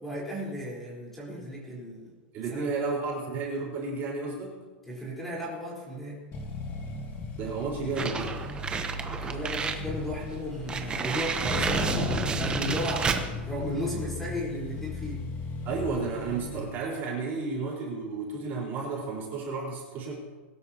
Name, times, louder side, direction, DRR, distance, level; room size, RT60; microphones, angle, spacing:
voice 1, 0.0-2.1 2.5-2.6 4.8-6.2 9.2-15.2, equal, 5° left, -5 dB, 4.3 m, -35 dB
voice 2, 2.3-4.6 7.4-8.4 15.6-20.3, right 4 dB, 30° right, -3 dB, 4.6 m, -32 dB
Accelerating revving vroom, 6.3-16.7, left 3 dB, 35° left, 2.4 m, -36 dB
sound 1, 8.0-9.8 10.2-10.3 10.7-13.3, right 5 dB, 15° right, 0.9 m, -30 dB
22.0 x 12.5 x 3.0 m, 1.4 s
supercardioid pair, 150°, 6 cm